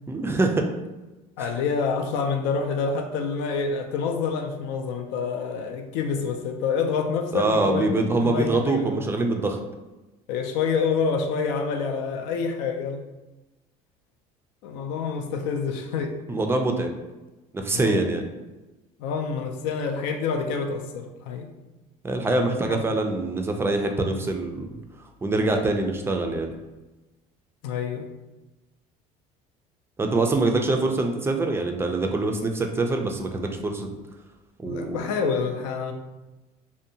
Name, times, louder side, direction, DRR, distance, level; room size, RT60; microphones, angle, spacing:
voice 1, 0.1-0.7 7.3-9.6 16.3-17.0 17.5-18.3 22.0-24.7 25.2-26.5 30.0-33.9 34.6-35.0, right 2 dB, 15° right, 4 dB, 0.3 m, -24 dB
voice 2, 1.4-9.0 10.3-13.0 14.6-16.2 17.7-18.0 19.0-21.5 22.7-22.8 27.6-28.1 34.6-35.9, left 5 dB, 80° left, 5 dB, 0.4 m, -27 dB
2.7 x 2.1 x 2.6 m, 1.1 s
supercardioid pair, 100°, 18 cm